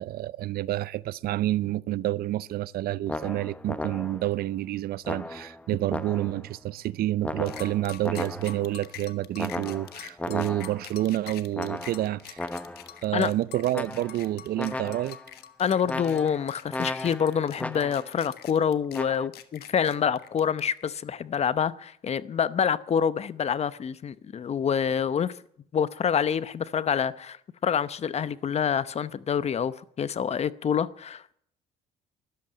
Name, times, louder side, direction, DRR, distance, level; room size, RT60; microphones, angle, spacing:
voice 1, 0.0-12.4 13.0-15.2, right 14 dB, 65° right, 0.6 m, -29 dB
sound 1, 3.1-4.4 5.0-6.5 7.2-8.7 9.4-11.0 11.5-13.0 13.7-14.3 14.6-15.3 15.9-18.2 18.9-19.3, left 2 dB, 10° left, 0.9 m, -36 dB
sound 2, 7.5-20.9, left 11 dB, 70° left, 1.4 m, -45 dB
voice 2, 15.6-25.4 25.7-27.4 27.6-31.3, left 7 dB, 40° left, 0.8 m, -27 dB
13.5 x 12.0 x 8.9 m
cardioid pair, 110°, 17 cm